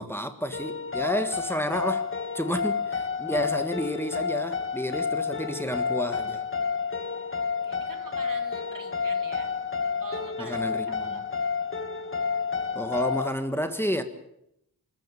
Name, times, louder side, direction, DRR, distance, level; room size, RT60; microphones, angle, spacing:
voice 1, 0.0-2.1 2.3-6.4 10.4-11.2 12.7-14.0, equal, 5° left, 8 dB, 1.7 m, -30 dB
sound 1, 0.5-13.3, left 5 dB, 35° left, 2.0 m, -30 dB
voice 2, 7.3-9.6 10.0-11.3, right 4 dB, 60° right, 7 dB, 2.6 m, -45 dB
25.5 x 15.0 x 9.0 m, 0.79 s
wide cardioid pair, 80°, 37 cm